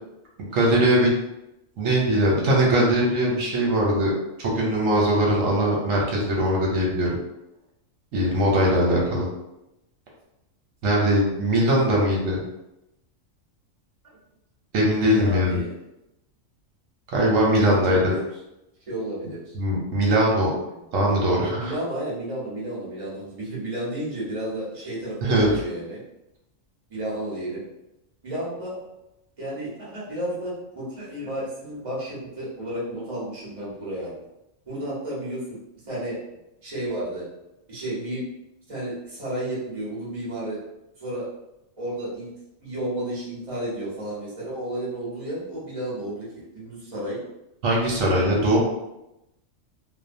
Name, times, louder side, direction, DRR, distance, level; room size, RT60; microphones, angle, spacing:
voice 1, 0.5-1.1 1.8-4.1 4.4-7.1 8.1-9.3 10.8-12.4 14.7-15.6 17.1-18.0 19.6-20.5 20.9-21.7 25.2-25.5 47.6-48.6, right 1 dB, 85° right, -3 dB, 1.1 m, -21 dB
voice 2, 15.1-15.7 17.6-18.2 18.9-19.6 20.7-20.8 21.5-26.0 26.9-27.7 28.2-28.8 29.4-34.2 34.7-35.6 35.9-36.2 36.6-37.2 37.7-38.3 38.7-40.6 41.0-41.2 41.8-42.3 42.6-46.3 46.5-47.2, right 1 dB, 30° right, -7 dB, 0.9 m, -32 dB
2.7 x 2.1 x 2.6 m, 0.90 s
omnidirectional pair, 1.3 m